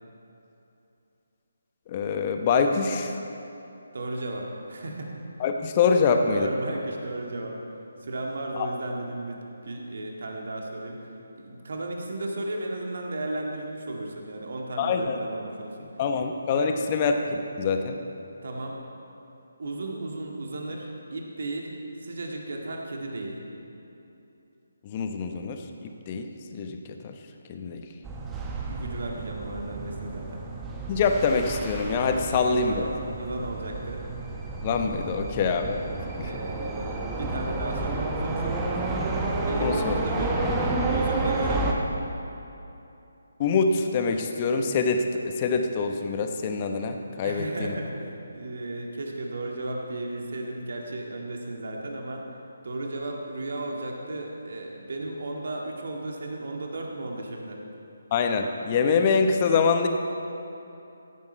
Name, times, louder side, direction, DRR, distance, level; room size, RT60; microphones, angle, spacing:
voice 1, 1.9-3.1 5.4-6.5 8.6-8.7 14.8-15.2 16.0-18.0 24.8-27.1 27.5-27.8 30.9-32.8 34.6-35.8 36.2-36.3 39.6-40.0 40.4-40.5 43.4-47.7 58.1-59.9, left 5 dB, 30° left, 5 dB, 0.9 m, -25 dB
voice 2, 3.9-5.1 6.3-7.6 8.0-11.1 11.4-15.9 16.6-17.0 18.4-18.8 19.6-23.4 28.4-30.4 32.3-34.0 36.2-39.1 39.4-40.3 40.9-41.8 47.2-52.2 52.6-57.6, right 2 dB, 55° right, 0 dB, 1.9 m, -34 dB
sound 1, 28.0-41.7, right 2 dB, 15° right, 1.1 m, -30 dB
16.0 x 9.6 x 4.5 m, 2.8 s
figure-of-eight pair, 145°, 0 cm